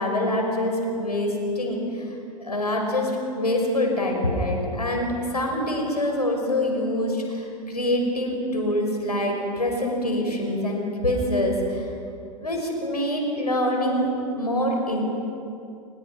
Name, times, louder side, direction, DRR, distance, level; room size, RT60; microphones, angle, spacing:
voice 1, 0.0-2.1 2.4-11.9 12.4-14.1 14.4-15.0, left 1 dB, 85° left, 1 dB, 6.0 m, -25 dB
30.0 x 24.0 x 6.0 m, 2.7 s
figure-of-eight pair, 105°, 20 cm